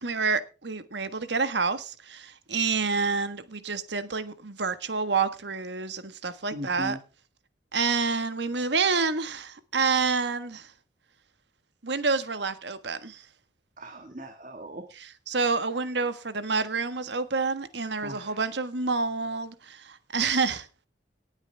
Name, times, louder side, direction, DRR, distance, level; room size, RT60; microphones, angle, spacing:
voice 1, 0.0-7.0 7.7-10.7 11.8-13.2 14.9-20.9, right 4 dB, 70° right, 1.4 m, -28 dB
voice 2, 6.5-7.0 13.8-14.8 18.0-18.4, right 1 dB, 40° right, 1.7 m, -38 dB
19.0 x 8.9 x 3.4 m
head